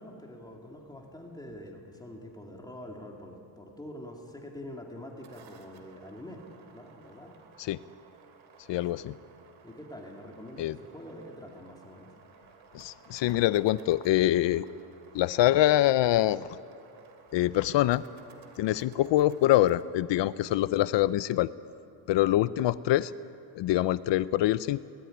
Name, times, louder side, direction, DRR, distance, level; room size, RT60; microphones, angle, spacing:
voice 1, 0.0-6.4 6.7-7.3 8.9-9.0 9.6-12.1, left 1 dB, 10° left, 0 dB, 2.4 m, -45 dB
sound 1, 4.9-19.8, right 6 dB, 80° right, 2.7 m, -56 dB
voice 2, 8.7-9.1 10.6-10.8 12.7-14.7 15.1-16.5 17.3-18.0 18.6-21.5 22.1-23.1 23.5-24.8, left 14 dB, 65° left, 16 dB, 0.6 m, -25 dB
22.0 x 19.0 x 10.0 m, 2.6 s
cardioid pair, 155°, 47 cm